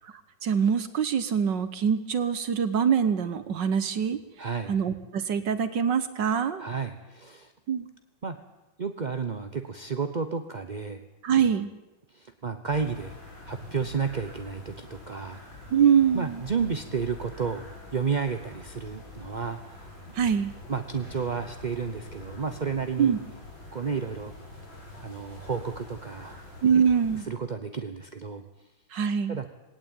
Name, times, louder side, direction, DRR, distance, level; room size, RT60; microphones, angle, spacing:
voice 1, 0.4-4.2 4.7-6.7 7.7-7.9 11.2-11.7 15.7-16.4 20.2-20.5 23.0-23.2 26.6-27.3 28.9-29.4, right 7 dB, 65° right, 12 dB, 1.7 m, -24 dB
voice 2, 4.4-4.8 6.6-7.5 8.2-8.4 8.8-11.0 12.1-13.2 13.5-15.4 16.1-19.9 20.7-23.2 23.7-24.3 25.0-26.4 27.3-28.4 29.3-29.4, right 5 dB, 40° right, 8 dB, 0.6 m, -32 dB
sound 1, 12.7-27.2, left 2 dB, 75° left, 6.6 m, -45 dB
19.5 x 18.0 x 9.0 m, 1.0 s
omnidirectional pair, 2.1 m